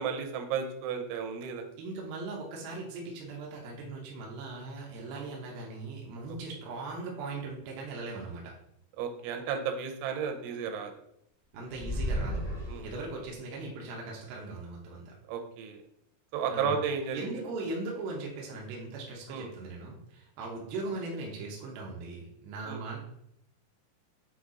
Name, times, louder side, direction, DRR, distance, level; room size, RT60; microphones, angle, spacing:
voice 1, 0.0-1.6 5.1-5.2 9.0-10.9 12.7-12.8 15.3-15.8 16.3-17.4 19.3-19.5 22.6-22.8, right 6 dB, 90° right, 5 dB, 3.1 m, -33 dB
voice 2, 1.8-8.5 11.5-15.1 16.5-16.8 17.1-23.0, right 3 dB, 75° right, -2 dB, 2.3 m, -39 dB
sound 1, 11.7-13.3, equal, 25° left, 1.3 m, -34 dB
7.8 x 3.2 x 3.8 m, 0.76 s
omnidirectional pair, 5.2 m